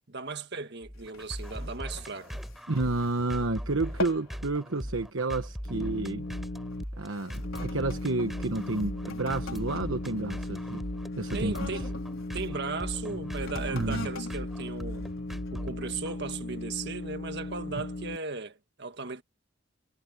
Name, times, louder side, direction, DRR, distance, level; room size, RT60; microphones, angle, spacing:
voice 1, 0.1-2.4 11.3-11.9 12.3-15.1 15.5-19.2, right 4 dB, 55° right, 1.7 m, -37 dB
sound 1, 0.8-16.2, equal, ahead, 7.1 m, -39 dB
sound 2, 0.9-3.5 3.8-4.4 4.7-5.1 5.7-6.0 6.7-12.5 13.3-15.7 16.2-16.3, left 2 dB, 85° left, 4.6 m, -44 dB
voice 2, 2.7-6.3 7.0-10.8 11.2-11.8 13.7-14.1 17.7-17.8, right 2 dB, 75° right, 1.2 m, -30 dB
sound 3, 5.7-6.8 7.3-18.2, left 2 dB, 50° left, 0.7 m, -37 dB
head